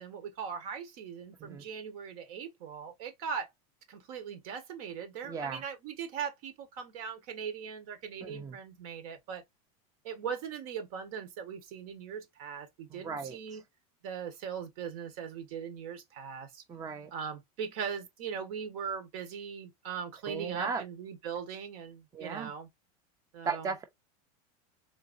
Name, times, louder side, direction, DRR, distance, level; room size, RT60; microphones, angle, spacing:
voice 1, 0.0-3.5 3.9-9.4 10.0-13.6 14.0-16.6 17.1-22.7 23.3-23.7, right 7 dB, 70° right, 1.3 m, -40 dB
voice 2, 5.2-5.6 8.2-8.5 12.9-13.4 16.7-17.1 20.3-20.8 22.1-22.5 23.4-23.9, right 5 dB, 20° right, 0.5 m, -36 dB
3.9 x 2.7 x 2.5 m
supercardioid pair, 125°, 19 cm